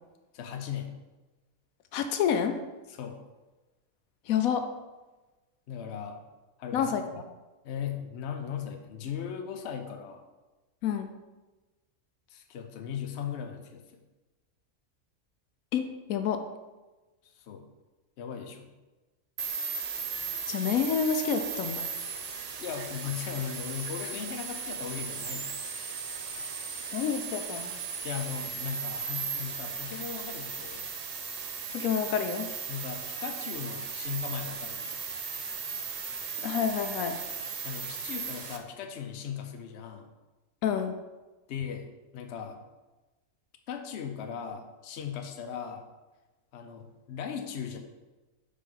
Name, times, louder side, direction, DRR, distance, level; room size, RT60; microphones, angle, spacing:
voice 1, 0.3-0.9 2.9-3.2 5.7-6.2 6.6-6.9 7.6-10.2 12.3-13.8 17.4-17.7 18.2-18.7 22.6-25.5 28.0-30.9 32.7-35.0 37.6-40.1 41.5-42.6 43.7-45.8 46.5-47.8, left 8 dB, 60° left, 5 dB, 0.9 m, -38 dB
voice 2, 1.9-2.6 4.3-4.6 6.7-7.0 10.8-11.1 15.7-16.4 20.5-21.9 26.9-27.7 31.7-32.5 36.4-37.1 40.6-41.0, left 7 dB, 85° left, 7 dB, 1.0 m, -28 dB
sound 1, 19.4-38.6, right 5 dB, 60° right, 0.4 m, -36 dB
5.1 x 4.3 x 5.4 m, 1.2 s
omnidirectional pair, 1.4 m